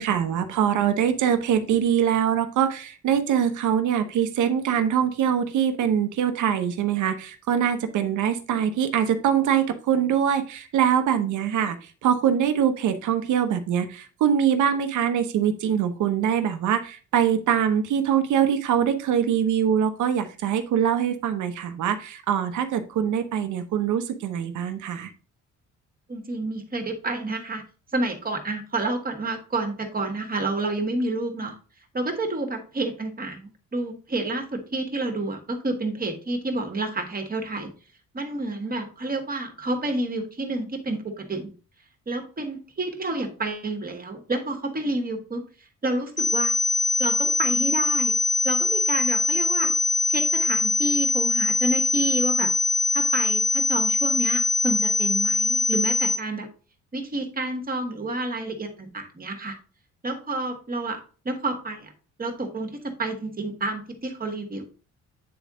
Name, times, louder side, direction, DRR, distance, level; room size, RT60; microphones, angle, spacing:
voice 1, 0.0-25.1, right 8 dB, 75° right, 8 dB, 0.9 m, -23 dB
voice 2, 26.1-27.6 27.9-31.5 31.9-37.7 38.1-41.5 42.1-45.4 45.8-46.5 47.0-48.2 48.4-49.7 50.1-52.5 52.9-56.5 56.9-59.5 60.0-61.9 62.2-64.6, right 2 dB, 30° right, 5 dB, 1.6 m, -29 dB
sound 1, 46.2-56.2, left 3 dB, 25° left, 0.9 m, -23 dB
8.8 x 3.5 x 3.7 m, 0.37 s
cardioid pair, 90°, 30 cm